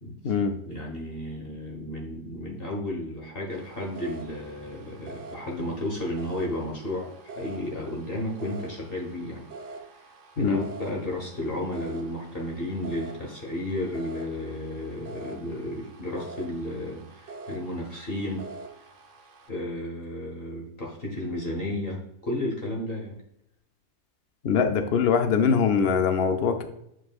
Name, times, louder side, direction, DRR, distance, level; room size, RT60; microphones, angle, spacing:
voice 1, 0.0-0.3 0.6-9.4 10.4-18.4 19.5-23.2, left 1 dB, 40° left, -1 dB, 1.2 m, -33 dB
sound 1, 3.5-19.5, right 3 dB, 55° right, 1.0 m, -45 dB
voice 2, 24.4-26.7, left 6 dB, 75° left, 7 dB, 0.5 m, -22 dB
8.5 x 4.9 x 2.4 m, 0.80 s
omnidirectional pair, 1.8 m